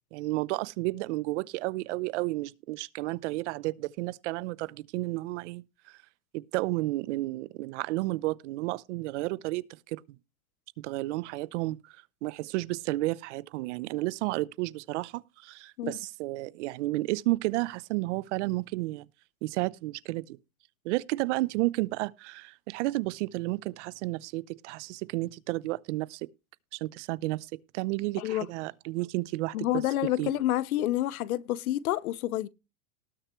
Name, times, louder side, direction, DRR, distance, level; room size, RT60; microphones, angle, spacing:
voice 1, 0.1-6.0 6.3-10.0 10.8-11.9 12.2-19.1 19.4-20.4 20.8-26.3 26.7-27.5 27.7-29.7 30.0-30.3, right 20 dB, 55° right, 0.8 m, -32 dB
voice 2, 29.5-32.5, left 14 dB, 80° left, 0.9 m, -28 dB
19.0 x 6.7 x 3.1 m
supercardioid pair, 145°, 42 cm